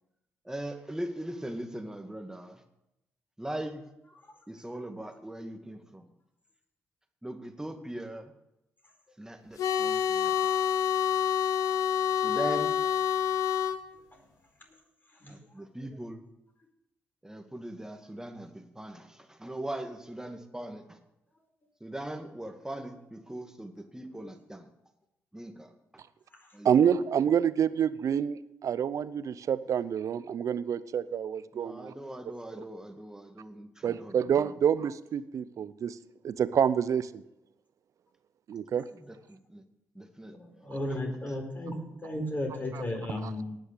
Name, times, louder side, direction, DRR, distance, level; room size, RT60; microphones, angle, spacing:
voice 1, 0.4-2.6 3.4-3.8 4.5-6.1 7.2-8.3 9.2-10.5 12.1-12.8 15.3-16.2 17.2-21.0 21.8-24.7 25.3-25.7 26.5-26.7 31.5-34.5 38.9-39.6 40.0-40.4 40.9-41.0, right 1 dB, 10° right, 5 dB, 2.0 m, -40 dB
sound 1, 9.6-13.8, left 9 dB, 70° left, 0.9 m, -27 dB
voice 2, 26.6-31.9 33.8-36.0 36.2-37.2 38.5-38.8 42.7-42.8, right 8 dB, 60° right, 16 dB, 0.7 m, -27 dB
voice 3, 40.3-43.5, left 1 dB, 30° left, 3 dB, 4.6 m, -34 dB
18.5 x 6.5 x 6.7 m, 0.88 s
hypercardioid pair, 45°, 6 cm